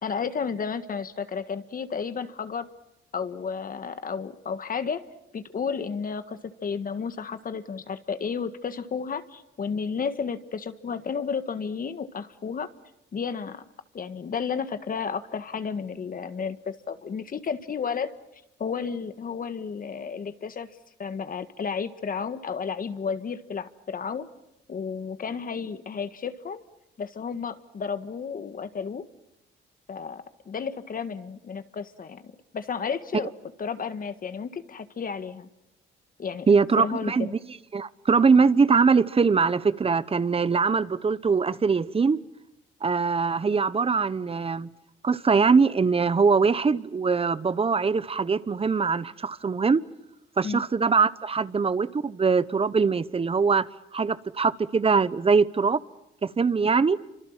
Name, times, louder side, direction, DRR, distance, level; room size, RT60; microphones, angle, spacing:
voice 1, 0.0-2.7 3.1-5.0 5.3-12.7 13.1-13.6 13.9-18.1 18.6-20.7 21.0-24.3 24.7-26.6 27.0-29.0 29.9-32.2 32.5-33.3 33.6-35.5 36.2-36.5 36.8-37.3 50.4-50.6, left 6 dB, 45° left, 1.6 m, -32 dB
voice 2, 36.5-37.3 37.7-42.2 42.8-44.7 45.0-49.8 50.4-55.8 56.2-57.0, right 5 dB, 30° right, 1.0 m, -22 dB
29.5 x 26.0 x 7.5 m
cardioid pair, 90°, 20 cm